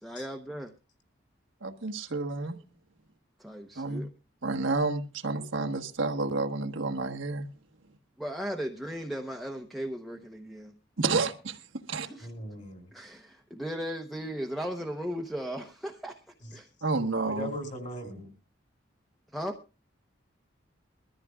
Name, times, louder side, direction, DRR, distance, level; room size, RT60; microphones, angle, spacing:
voice 1, 0.0-0.7 3.4-4.1 8.2-10.7 12.0-12.3 12.9-16.2 16.5-16.7 19.3-19.6, equal, ahead, 3 dB, 0.8 m, -36 dB
voice 2, 1.6-2.6 3.7-4.0 4.4-7.5 11.0-11.6 11.9-12.1 16.8-17.5, right 3 dB, 80° right, 3 dB, 1.3 m, -30 dB
voice 3, 12.2-12.9 16.4-16.5 17.3-18.3, left 1 dB, 35° left, 4 dB, 3.0 m, -39 dB
22.0 x 14.0 x 2.4 m, 0.31 s
head